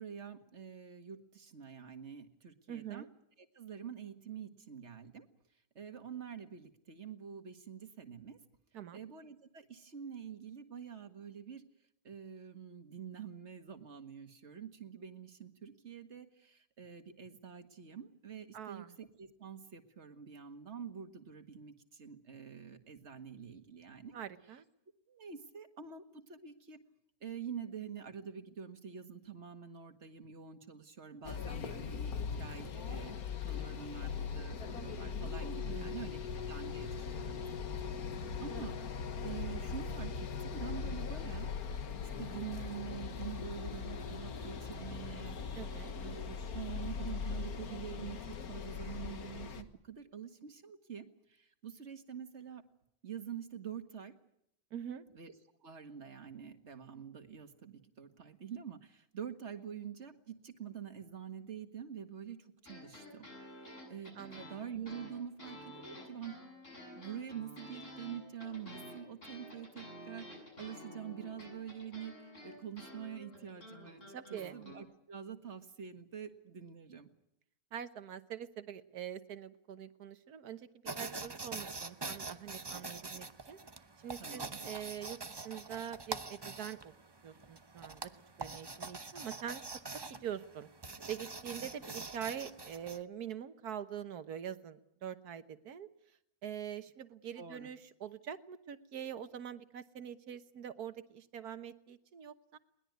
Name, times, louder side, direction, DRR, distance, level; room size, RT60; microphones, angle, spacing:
voice 1, 0.0-3.1 3.5-5.3 5.8-8.4 8.9-11.7 12.0-24.1 25.1-26.8 27.2-33.1 33.4-36.2 36.5-37.4 37.7-38.0 38.4-38.7 39.2-41.5 42.2-45.4 46.0-52.6 53.0-54.1 55.1-55.3 55.6-63.3 63.6-66.4 66.9-74.0 74.3-77.1 84.2-84.6 90.1-90.2 97.4-97.7, right 8 dB, 50° right, 8 dB, 1.9 m, -46 dB
voice 2, 2.7-3.1 8.7-9.0 18.5-18.9 24.1-24.6 35.7-36.2 45.5-45.9 54.7-55.0 64.2-64.5 74.1-74.6 77.7-80.7 81.0-83.6 84.0-86.9 87.2-88.1 88.4-89.6 90.1-90.7 91.1-95.9 96.4-102.6, right 9 dB, 85° right, 11 dB, 1.7 m, -44 dB
sound 1, 31.2-49.6, left 6 dB, 75° left, 1.8 m, -40 dB
sound 2, 62.6-74.8, left 1 dB, 55° left, 7.9 m, -51 dB
sound 3, 80.8-93.0, right 3 dB, 20° right, 0.7 m, -45 dB
21.5 x 20.0 x 9.4 m, 0.75 s
omnidirectional pair, 1.6 m